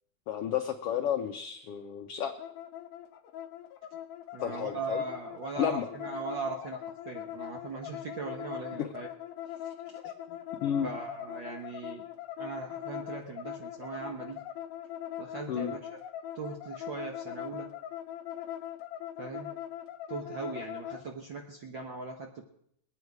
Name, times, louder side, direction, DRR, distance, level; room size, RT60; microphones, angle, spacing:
voice 1, 0.3-2.3 4.4-5.0 5.6-5.9 8.8-8.9 10.3-10.9 15.5-15.7, left 9 dB, 75° left, 5 dB, 1.4 m, -32 dB
sound 1, 2.4-21.0, left 11 dB, 90° left, 2.3 m, -41 dB
voice 2, 4.3-9.1 9.9-10.0 10.8-12.1 12.4-14.4 15.2-15.8 16.3-17.7 19.2-19.5 20.1-22.4, right 4 dB, 65° right, 2 dB, 1.1 m, -39 dB
21.0 x 9.4 x 4.7 m, 0.72 s
omnidirectional pair, 3.5 m